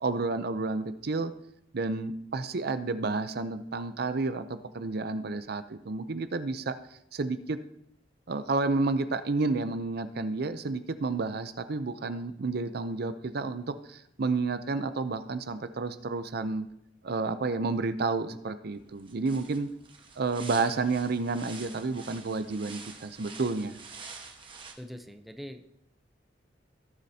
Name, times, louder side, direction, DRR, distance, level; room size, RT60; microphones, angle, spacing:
voice 1, 0.0-1.3 1.7-6.7 7.1-7.6 8.3-16.7 17.0-19.7 20.2-23.8, right 3 dB, 55° right, 11 dB, 0.6 m, -30 dB
sound 1, 18.7-24.7, right 4 dB, 30° right, 1.3 m, -47 dB
voice 2, 24.8-25.7, equal, ahead, 6 dB, 0.7 m, -43 dB
18.0 x 7.4 x 2.8 m, 0.78 s
head